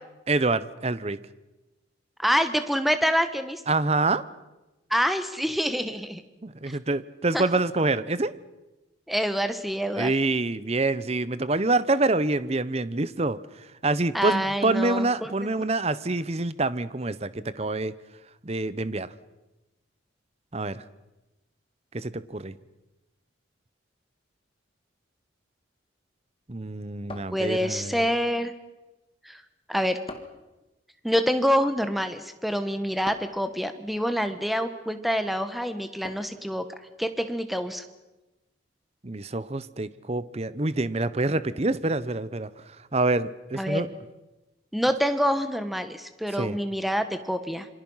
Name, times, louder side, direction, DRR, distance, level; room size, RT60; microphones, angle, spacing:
voice 1, 0.3-1.2 3.7-4.2 6.4-8.3 10.0-13.4 13.8-17.9 18.4-19.1 20.5-20.8 21.9-22.5 26.5-28.0 39.0-42.5 42.9-43.9 46.4-46.6, right 2 dB, 30° right, 15 dB, 0.8 m, -26 dB
voice 2, 2.2-3.6 4.9-6.2 6.7-6.8 7.3-7.4 9.1-10.1 14.1-15.3 27.3-28.5 29.2-29.4 29.7-30.0 31.0-36.6 37.0-37.8 43.5-43.9 44.7-47.7, equal, ahead, 9 dB, 1.3 m, -26 dB
sound 1, 27.1-28.0 30.1-30.5 33.0-33.5 36.0-36.5, left 2 dB, 25° left, 1.9 m, -43 dB
27.0 x 24.5 x 5.7 m, 1.1 s
head